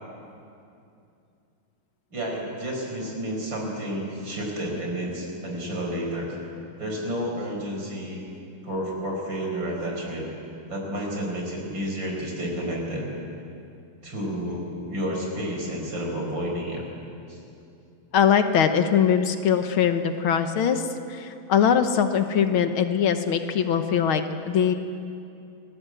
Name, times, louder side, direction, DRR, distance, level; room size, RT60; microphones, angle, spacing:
voice 1, 2.1-6.3 6.8-8.2 8.6-10.2 10.7-13.1 14.0-16.8 17.3-17.4, equal, 55° right, 0 dB, 5.8 m, -30 dB
voice 2, 18.1-24.7, left 8 dB, 70° left, 8 dB, 1.9 m, -22 dB
28.0 x 19.5 x 7.9 m, 2.6 s
omnidirectional pair, 2.4 m